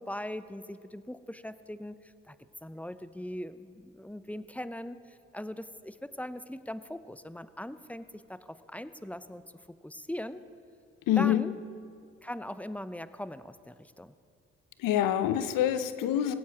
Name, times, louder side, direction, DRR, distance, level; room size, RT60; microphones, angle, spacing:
voice 1, 0.0-2.4 2.6-10.4 11.2-11.5 12.2-14.2, left 1 dB, 5° left, 13 dB, 0.6 m, -40 dB
voice 2, 11.1-11.4 14.8-16.3, left 11 dB, 75° left, 11 dB, 0.8 m, -26 dB
18.5 x 16.5 x 3.0 m, 2.3 s
hypercardioid pair, 45°, 33 cm